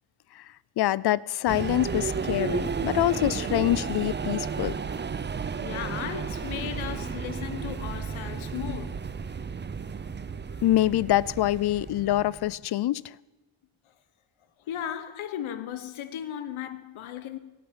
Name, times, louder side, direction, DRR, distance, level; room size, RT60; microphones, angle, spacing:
voice 1, 0.8-4.8 10.6-13.1, left 14 dB, 55° left, 0.5 m, -25 dB
sound 1, 1.5-12.5, right 6 dB, 20° right, 0.6 m, -33 dB
voice 2, 5.6-9.0 14.7-17.4, left 10 dB, 70° left, 1.3 m, -36 dB
17.0 x 9.5 x 8.8 m
cardioid pair, 110°, 49 cm